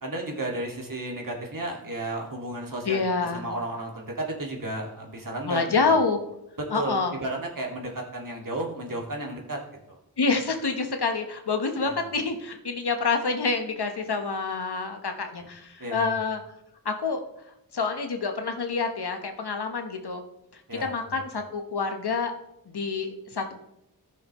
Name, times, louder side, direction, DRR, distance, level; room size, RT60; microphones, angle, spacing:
voice 1, 0.0-3.0 3.3-6.0 6.6-9.6 9.9-10.0 11.8-12.0 15.8-16.1 20.7-21.2, right 2 dB, 55° right, 0 dB, 2.1 m, -33 dB
voice 2, 2.9-3.4 5.4-6.3 6.7-7.1 10.2-16.4 16.8-17.2 17.7-20.2 20.5-22.3 22.7-23.5, left 4 dB, 90° left, 5 dB, 1.1 m, -27 dB
15.0 x 6.3 x 3.0 m, 0.84 s
wide cardioid pair, 45°, 38 cm